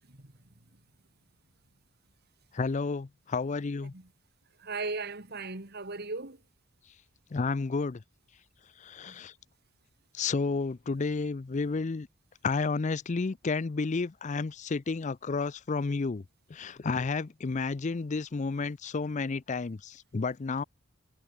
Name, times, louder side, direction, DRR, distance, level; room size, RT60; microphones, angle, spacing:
voice 1, 2.5-3.9 7.3-8.0 8.8-9.3 10.1-12.1 12.4-16.2 16.5-20.6, left 4 dB, 35° left, 0.5 m, -31 dB
voice 2, 4.6-6.4 9.1-9.2, right 3 dB, 50° right, 2.3 m, -37 dB
head